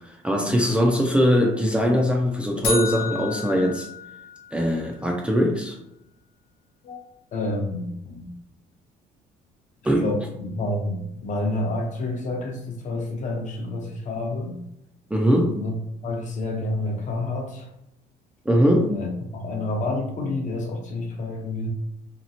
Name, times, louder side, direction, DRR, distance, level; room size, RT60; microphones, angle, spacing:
voice 1, 0.0-3.9 4.5-5.8 9.8-10.1 15.1-15.6 18.5-19.0, equal, 5° right, 0 dB, 0.4 m, -21 dB
sound 1, 2.6-4.8, left 4 dB, 90° left, 0.8 m, -31 dB
voice 2, 7.3-8.3 10.0-14.6 15.6-15.7 16.0-17.7 18.9-21.7, left 2 dB, 45° left, 2 dB, 0.7 m, -29 dB
2.9 x 2.4 x 2.7 m, 0.80 s
cardioid pair, 110°, 17 cm